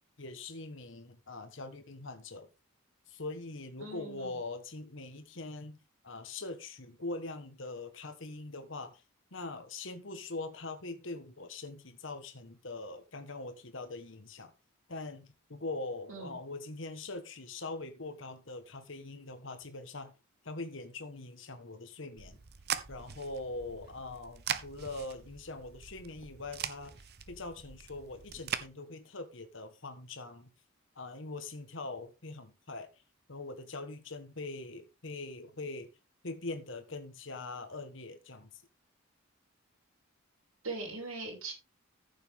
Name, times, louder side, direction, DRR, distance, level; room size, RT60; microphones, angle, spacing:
voice 1, 0.2-2.5 3.1-5.8 6.0-9.0 9.3-14.5 14.9-20.1 20.4-22.4 22.9-30.5 30.9-32.9 33.3-35.9 36.2-38.6, left 2 dB, 60° left, 1.4 m, -42 dB
voice 2, 3.8-4.3 16.1-16.3 40.6-41.5, right 3 dB, 75° right, 6.5 m, -40 dB
sound 1, 22.2-28.7, right 8 dB, 50° right, 0.9 m, -41 dB
14.0 x 7.3 x 3.6 m
head